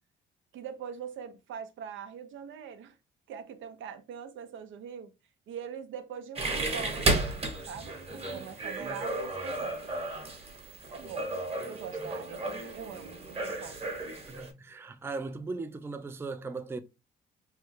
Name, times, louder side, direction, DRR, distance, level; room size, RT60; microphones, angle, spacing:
voice 1, 0.5-3.0 3.3-5.1 5.5-9.9 10.9-11.3 11.6-13.8, right 7 dB, 80° right, 0.5 m, -43 dB
sound 1, 6.4-14.5, right 2 dB, 30° right, 1.0 m, -33 dB
voice 2, 14.3-16.8, right 3 dB, 10° right, 0.3 m, -38 dB
3.1 x 2.3 x 3.1 m
cardioid pair, 90°, 20 cm